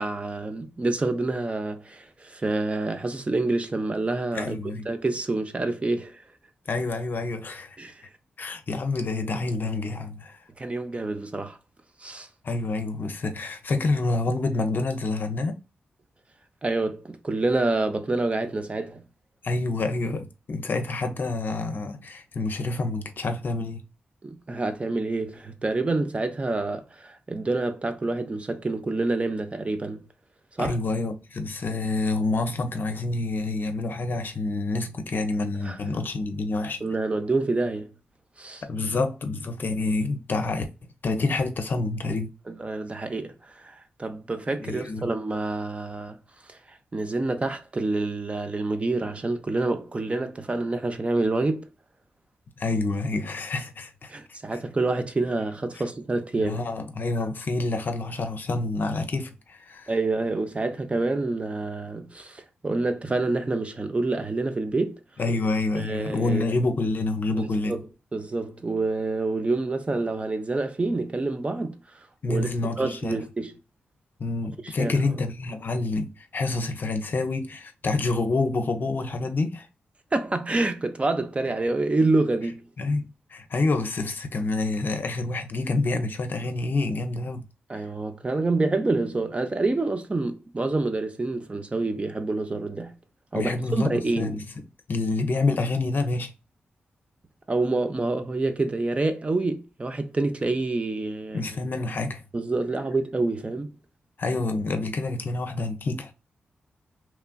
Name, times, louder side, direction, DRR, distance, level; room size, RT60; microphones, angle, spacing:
voice 1, 0.0-4.6 4.9-6.2 7.8-8.0 10.6-11.6 12.0-12.3 16.6-19.0 24.2-30.0 30.5-30.8 35.6-35.8 36.8-37.9 38.4-38.6 42.5-46.2 46.5-51.7 54.1-56.6 59.9-65.0 65.8-66.4 67.4-67.8 68.1-71.8 72.3-72.5 72.8-73.5 74.6-75.0 80.1-82.6 87.7-92.9 93.3-94.4 97.5-101.4 102.3-103.7, right 2 dB, 30° right, 0.6 m, -27 dB
voice 2, 4.3-4.9 6.7-7.8 8.4-10.4 12.4-15.6 19.4-23.8 30.6-36.8 38.6-40.7 41.0-42.3 44.6-45.1 52.6-54.1 56.4-59.9 65.2-67.9 72.2-73.2 74.2-79.7 82.8-87.5 93.3-96.3 101.3-102.2 104.2-106.1, left 3 dB, 55° left, 0.6 m, -28 dB
3.1 x 2.4 x 2.2 m
cardioid pair, 50°, 4 cm